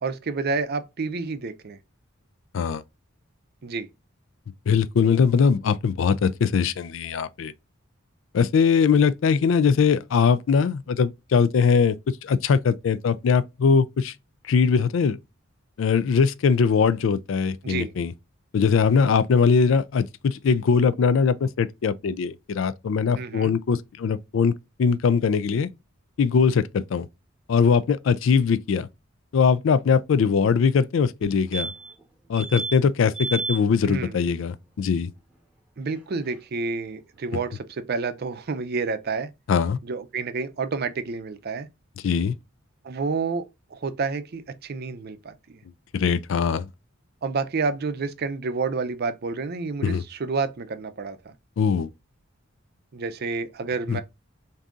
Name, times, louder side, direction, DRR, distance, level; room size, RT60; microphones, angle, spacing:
voice 1, 0.0-1.8 3.6-3.9 17.6-17.9 23.2-23.5 33.8-34.1 35.8-39.3 39.8-41.7 42.8-45.6 47.2-51.3 52.9-54.0, right 4 dB, 50° right, 0.5 m, -29 dB
voice 2, 4.7-7.5 8.3-12.0 12.2-14.1 14.4-15.2 15.8-18.1 18.5-24.5 24.8-25.7 26.2-27.1 27.5-28.9 29.3-31.7 32.3-35.1 39.5-39.8 42.0-42.4 45.9-46.7 49.8-50.0 51.6-51.9 53.9-54.0, left 6 dB, 70° left, 0.4 m, -21 dB
sound 1, 31.2-31.3 31.5-32.0 32.3-32.8 33.1-33.6 36.0-36.1 36.3-36.4, right 4 dB, 5° right, 1.0 m, -31 dB
3.6 x 2.7 x 3.7 m
head